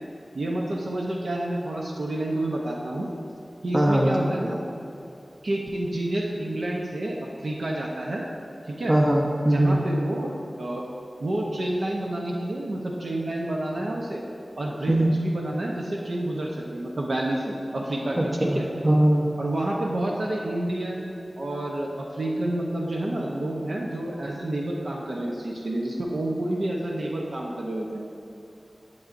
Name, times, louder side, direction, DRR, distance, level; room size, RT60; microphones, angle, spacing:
voice 1, 0.3-3.1 3.6-4.6 5.4-7.1 7.4-8.2 8.7-8.9 9.4-10.3 10.6-10.8 11.2-14.2 14.6-18.7 19.4-28.1, right 1 dB, 85° right, -2 dB, 0.8 m, -29 dB
voice 2, 3.7-4.1 8.9-9.8 14.9-15.1 18.2-18.6 18.8-19.2, right 1 dB, 35° right, 0 dB, 1.0 m, -20 dB
11.0 x 7.0 x 2.6 m, 2.6 s
wide cardioid pair, 55°, 0 cm